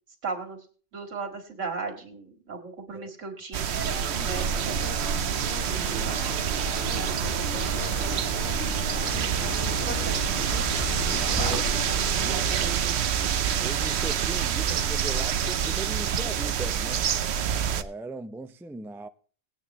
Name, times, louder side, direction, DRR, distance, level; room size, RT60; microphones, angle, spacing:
voice 1, 0.2-0.7 0.9-5.0 5.6-6.6 6.9-13.0, right 4 dB, 90° right, 2.4 m, -38 dB
sound 1, 3.5-17.8, right 8 dB, 65° right, 0.9 m, -27 dB
sound 2, 3.7-12.2, left 7 dB, 80° left, 1.3 m, -40 dB
Zipper (clothing), 6.0-12.7, left 1 dB, 45° left, 1.7 m, -36 dB
voice 2, 11.1-11.8 12.2-12.5 13.6-17.1 17.7-19.1, right 2 dB, 5° right, 0.4 m, -39 dB
19.0 x 9.0 x 3.1 m
omnidirectional pair, 1.3 m